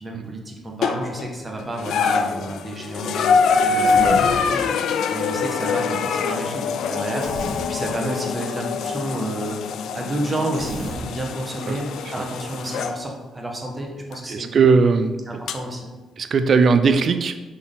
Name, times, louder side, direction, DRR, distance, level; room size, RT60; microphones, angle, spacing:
voice 1, 0.0-9.6 9.9-14.5 15.3-16.0, right 1 dB, 25° right, 1 dB, 1.2 m, -30 dB
sound 1, 0.8-1.3 1.8-13.0 14.1-14.2 15.5-15.6, left 5 dB, 75° left, 0.3 m, -24 dB
Human voice, 3.8-4.4 7.2-7.7 10.5-11.0, right 2 dB, 85° right, 1.6 m, -32 dB
voice 2, 4.0-4.8 11.7-11.8 12.2-12.3 14.3-15.4 16.2-17.4, right 5 dB, 50° right, 9 dB, 0.4 m, -20 dB
5.8 x 4.2 x 3.9 m, 1.2 s
cardioid pair, 90°, 0 cm